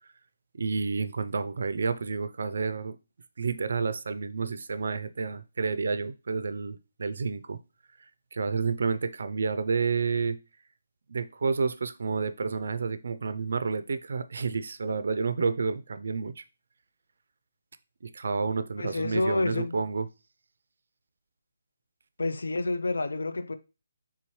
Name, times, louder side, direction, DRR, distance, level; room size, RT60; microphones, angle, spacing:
voice 1, 0.6-3.0 3.4-7.6 8.3-10.4 11.1-16.4 18.0-20.1, right 4 dB, 50° right, 0.4 m, -30 dB
voice 2, 18.8-19.7 22.2-23.5, left 2 dB, 90° left, 0.5 m, -28 dB
4.3 x 3.6 x 3.1 m
hypercardioid pair, 180°, 0 cm